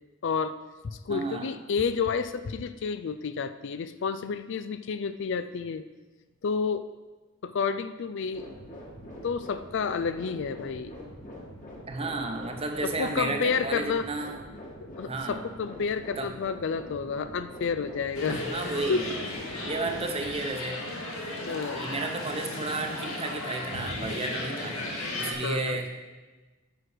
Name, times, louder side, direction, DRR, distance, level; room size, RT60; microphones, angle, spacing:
voice 1, 0.2-0.5 0.8-5.8 6.4-6.8 7.4-8.5 9.2-10.9 12.8-14.1 14.9-18.4 18.9-19.0 19.9-20.1 21.5-21.9 25.4-25.8, left 5 dB, 55° left, 12 dB, 0.4 m, -30 dB
voice 2, 1.1-1.5 11.9-14.4 15.1-15.5 16.2-16.3 18.3-19.1 19.6-20.8 21.7-24.9 25.2-25.9, right 3 dB, 25° right, 4 dB, 0.8 m, -32 dB
sound 1, 8.3-20.4, equal, 35° left, 1.9 m, -44 dB
sound 2, 18.1-25.3, left 2 dB, 80° left, 1.9 m, -35 dB
9.6 x 6.0 x 4.9 m, 1.2 s
head